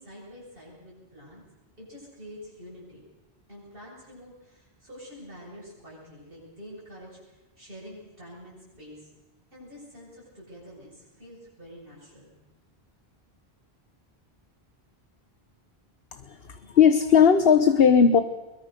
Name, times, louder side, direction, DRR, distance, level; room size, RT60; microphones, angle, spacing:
voice 1, 0.0-1.4 1.8-3.1 3.5-9.1 9.5-12.4, equal, 60° right, -6 dB, 7.6 m, -47 dB
voice 2, 16.1-18.2, left 7 dB, 65° left, 10 dB, 1.3 m, -18 dB
23.0 x 21.0 x 6.7 m, 1.1 s
omnidirectional pair, 1.1 m